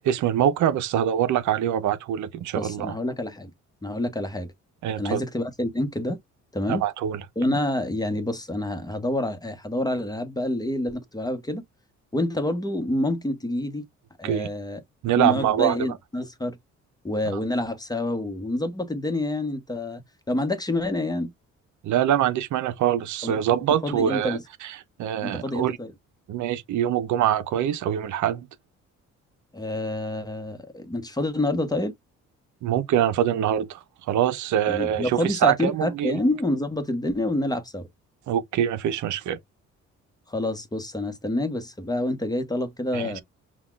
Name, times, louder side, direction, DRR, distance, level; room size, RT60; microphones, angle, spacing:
voice 1, 0.0-3.0 4.8-5.2 6.7-7.2 7.5-7.6 14.2-14.5 15.0-15.8 21.8-25.8 26.3-28.5 32.6-33.8 34.1-36.2 38.3-39.4 42.9-43.2, right 10 dB, 75° right, 0.6 m, -24 dB
voice 2, 2.6-3.5 3.8-4.5 5.0-6.2 6.5-6.8 7.4-11.6 12.1-13.8 14.2-14.8 15.2-16.6 17.0-20.0 20.3-21.3 23.2-23.4 23.8-24.4 25.2-25.9 29.5-31.9 34.7-37.9 40.3-43.2, left 1 dB, 15° left, 1.0 m, -27 dB
5.7 x 2.3 x 2.3 m
cardioid pair, 90°, 30 cm